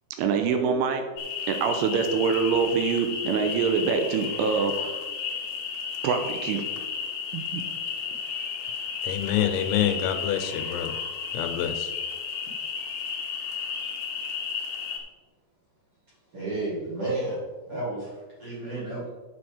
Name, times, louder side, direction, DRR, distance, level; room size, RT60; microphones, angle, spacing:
voice 1, 0.2-1.0 1.5-5.0 6.0-6.6 7.3-7.6, right 5 dB, 80° right, 6 dB, 3.1 m, -25 dB
sound 1, 1.2-15.0, left 6 dB, 70° left, 2.2 m, -33 dB
voice 2, 9.0-11.0 11.3-11.9, left 10 dB, 85° left, 7 dB, 3.5 m, -27 dB
voice 3, 16.3-18.1 18.4-19.0, right 2 dB, 45° right, -7 dB, 1.8 m, -31 dB
8.6 x 7.2 x 5.0 m, 1.3 s
omnidirectional pair, 5.9 m